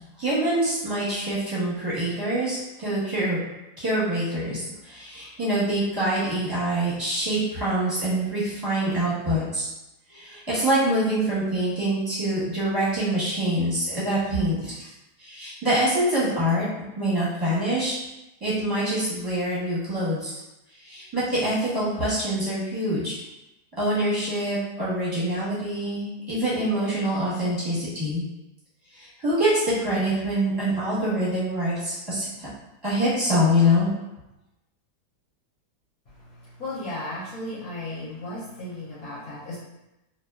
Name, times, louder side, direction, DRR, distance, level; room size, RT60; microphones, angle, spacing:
voice 1, 0.2-3.4 3.8-9.7 10.1-14.9 15.2-16.7 17.0-17.9 18.4-20.4 20.8-23.2 23.8-28.2 28.9-32.5 32.8-33.9, equal, 20° right, -11 dB, 0.8 m, -25 dB
voice 2, 36.1-39.6, left 1 dB, 65° left, -8 dB, 0.9 m, -35 dB
2.7 x 2.2 x 2.3 m, 0.97 s
omnidirectional pair, 1.8 m